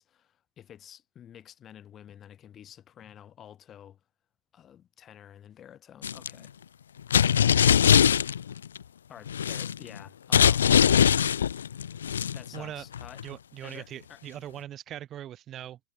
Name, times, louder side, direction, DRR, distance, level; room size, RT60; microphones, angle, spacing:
voice 1, 0.0-4.0 4.5-6.5 9.1-10.7 11.7-13.2 13.6-14.2, left 10 dB, 25° left, 8.0 m, -50 dB
sound 1, 6.0-6.3 7.1-8.8 9.3-10.0 10.3-12.6 12.9-13.2, left 8 dB, 65° left, 1.0 m, -22 dB
voice 2, 12.5-12.8 13.2-15.8, right 11 dB, 30° right, 8.0 m, -40 dB
figure-of-eight pair, 90°, 0 cm